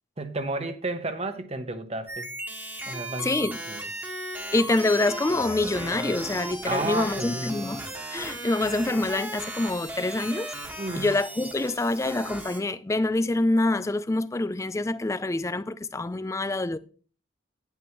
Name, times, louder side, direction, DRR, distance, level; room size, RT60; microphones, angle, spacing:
voice 1, 0.2-2.3 2.9-3.3 3.7-3.9 6.6-7.6 10.8-11.1, right 2 dB, 30° right, 1.0 m, -32 dB
sound 1, 2.1-12.6, right 1 dB, 10° right, 1.4 m, -36 dB
voice 2, 3.2-3.6 4.5-7.8 8.1-10.5 11.0-16.8, left 2 dB, 15° left, 0.3 m, -26 dB
10.0 x 9.3 x 3.0 m
head